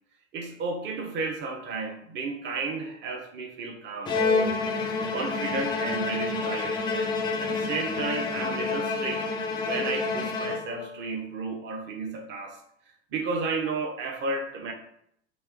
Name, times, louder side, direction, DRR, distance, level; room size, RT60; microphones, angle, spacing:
voice 1, 0.3-4.1 4.5-4.6 5.1-9.3 9.6-12.6 13.1-14.7, right 3 dB, 30° right, 3 dB, 0.8 m, -33 dB
Bowed string instrument, 4.1-11.0, left 4 dB, 15° left, 0.4 m, -28 dB
3.3 x 3.0 x 3.4 m, 0.71 s
figure-of-eight pair, 80°, 35 cm